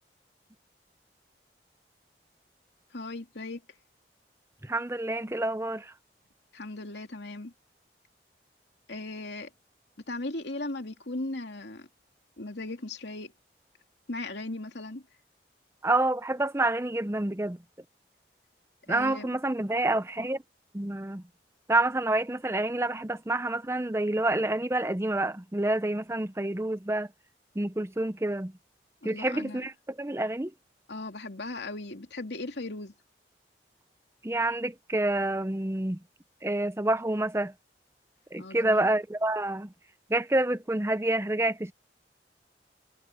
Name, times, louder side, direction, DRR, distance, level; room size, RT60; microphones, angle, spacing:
voice 1, 2.9-3.6 6.5-7.5 8.9-9.5 10.1-11.9 12.4-13.3 14.1-15.0 18.9-19.3 29.0-29.6 30.9-32.9 38.4-38.9, left 2 dB, 80° left, 2.6 m, -37 dB
voice 2, 4.6-5.9 15.8-17.6 18.9-20.4 20.7-21.2 21.7-27.1 27.6-28.5 29.0-29.7 30.0-30.5 34.2-36.0 36.4-37.5 38.3-39.7 40.1-41.7, right 2 dB, 15° right, 0.6 m, -28 dB
head